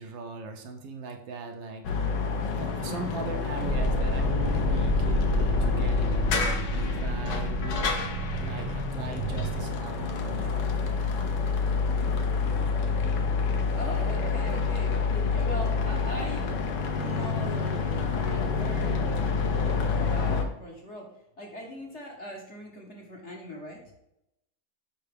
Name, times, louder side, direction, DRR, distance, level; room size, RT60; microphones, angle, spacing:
voice 1, 0.0-2.3 2.5-6.3 6.7-7.8 8.4-10.6, right 3 dB, 70° right, 3 dB, 1.5 m, -39 dB
sound 1, 1.8-20.5, left 5 dB, 65° left, 1.4 m, -28 dB
sound 2, 3.6-9.6, right 2 dB, 25° right, 0.7 m, -30 dB
voice 2, 13.5-16.5 16.9-19.3 19.6-23.8, equal, 40° left, -1 dB, 1.2 m, -41 dB
6.9 x 5.4 x 3.4 m, 0.82 s
omnidirectional pair, 2.2 m